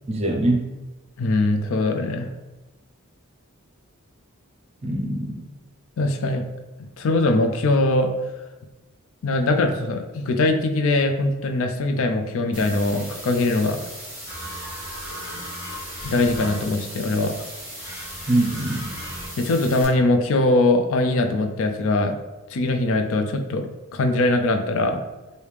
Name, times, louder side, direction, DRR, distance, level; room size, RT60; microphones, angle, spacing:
voice 1, 0.1-0.7 4.8-5.5 18.3-19.0, right 1 dB, 30° right, 0 dB, 0.5 m, -23 dB
voice 2, 1.2-2.3 6.0-6.4 7.0-8.1 9.2-13.8 16.0-17.5 19.4-22.2 22.5-25.0, left 2 dB, 65° left, 6 dB, 0.4 m, -21 dB
sound 1, 12.5-19.8, equal, 10° right, 1.1 m, -38 dB
sound 2, 14.2-16.9 17.8-19.3, equal, 50° left, 1.4 m, -37 dB
3.3 x 2.7 x 3.2 m, 1.1 s
head